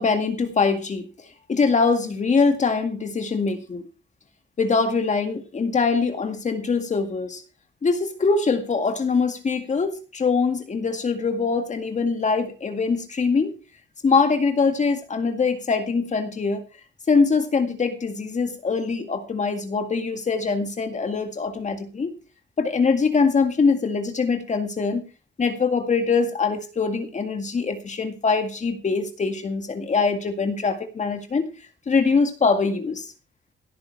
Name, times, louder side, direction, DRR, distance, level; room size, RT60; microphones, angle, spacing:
voice 1, 0.0-3.8 4.6-7.4 7.8-13.5 14.0-16.6 17.1-22.1 22.6-25.0 25.4-31.5 31.9-33.1, left 4 dB, 40° left, 7 dB, 2.1 m, -23 dB
17.0 x 9.7 x 4.7 m, 0.34 s
wide cardioid pair, 130°, 19 cm